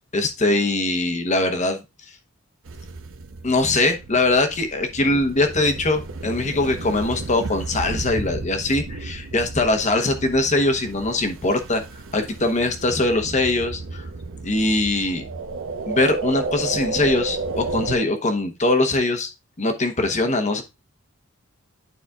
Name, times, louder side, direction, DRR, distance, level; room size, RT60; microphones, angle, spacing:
voice 1, 0.1-1.8 3.4-11.8 12.1-14.1 14.4-15.2 15.9-19.3 19.6-20.6, left 2 dB, 35° left, 7 dB, 1.0 m, -22 dB
sound 1, 2.6-18.0, right 3 dB, 70° right, 0.8 m, -33 dB
12.0 x 4.2 x 2.4 m, 0.25 s
head